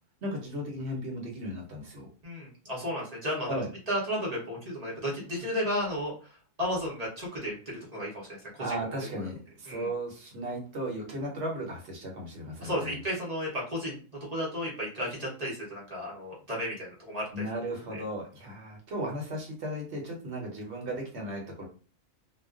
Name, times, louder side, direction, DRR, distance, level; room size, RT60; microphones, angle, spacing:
voice 1, 0.2-2.1 3.5-3.7 8.6-13.0 17.3-21.6, right 1 dB, 60° right, 0 dB, 1.0 m, -35 dB
voice 2, 2.2-3.6 3.9-8.9 9.2-9.3 9.7-9.9 12.6-17.4, equal, 35° right, -5 dB, 0.7 m, -34 dB
2.4 x 2.2 x 2.3 m, 0.39 s
omnidirectional pair, 1.4 m